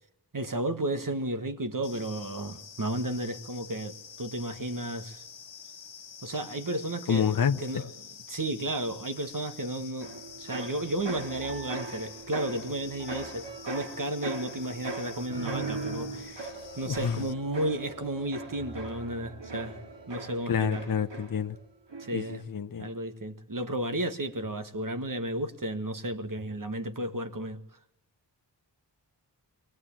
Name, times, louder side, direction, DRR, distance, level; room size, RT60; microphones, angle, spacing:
voice 1, 0.3-5.2 6.2-7.9 8.3-20.8 22.0-22.4 22.8-27.6, right 1 dB, 45° right, 1.9 m, -33 dB
sound 1, 1.8-17.3, left 7 dB, 80° left, 1.3 m, -48 dB
voice 2, 7.1-7.8 16.9-17.3 20.5-21.6 22.1-22.9, left 7 dB, 50° left, 0.8 m, -28 dB
sound 2, 10.0-21.6 21.9-22.4, right 3 dB, 75° right, 4.0 m, -39 dB
24.0 x 18.0 x 8.8 m
wide cardioid pair, 85°, 44 cm